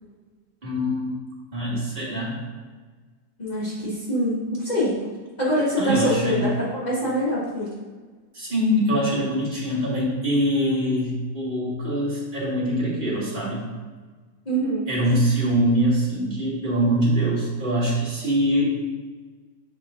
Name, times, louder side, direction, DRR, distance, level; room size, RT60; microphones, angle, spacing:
voice 1, 0.6-1.1 1.5-2.4 5.8-6.5 8.3-13.7 14.9-18.8, equal, 30° right, -6 dB, 1.8 m, -23 dB
voice 2, 3.4-5.0 5.4-7.7 14.5-14.8, equal, 25° left, -10 dB, 1.6 m, -24 dB
5.7 x 4.9 x 3.6 m, 1.4 s
omnidirectional pair, 1.8 m